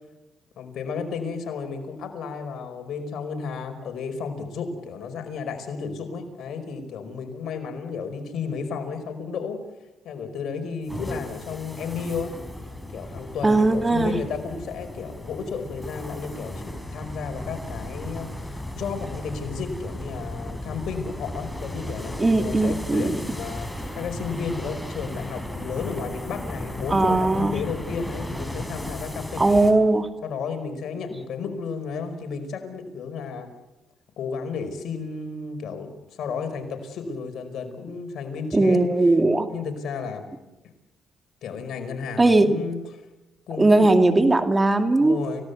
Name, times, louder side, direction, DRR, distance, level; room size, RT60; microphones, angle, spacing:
voice 1, 0.6-9.6 10.0-12.4 12.9-29.8 30.2-33.5 34.2-38.8 39.5-40.2 41.4-42.8 43.5-44.2 45.0-45.4, left 5 dB, 70° left, 6 dB, 5.1 m, -33 dB
sound 1, 10.9-29.7, left 1 dB, 5° left, 4.9 m, -35 dB
voice 2, 13.4-14.2 22.2-23.2 26.9-27.6 29.4-30.1 38.5-39.5 42.2-42.5 43.6-45.2, right 2 dB, 20° right, 7 dB, 2.2 m, -19 dB
29.0 x 17.5 x 8.2 m, 1.0 s
cardioid pair, 90°, 0 cm